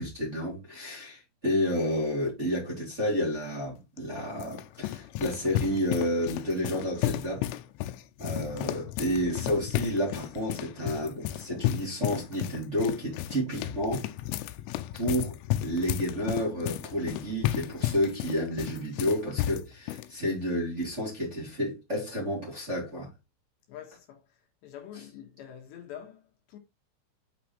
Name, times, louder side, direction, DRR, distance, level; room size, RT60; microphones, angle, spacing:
voice 1, 0.0-7.4 8.2-14.0 14.9-23.1, equal, 15° right, 3.2 m, -30 dB
sound 1, 4.0-20.1, left 14 dB, 90° left, 3.3 m, -33 dB
voice 2, 23.7-26.6, left 10 dB, 70° left, 3.4 m, -46 dB
9.1 x 6.0 x 3.3 m
omnidirectional pair, 5.6 m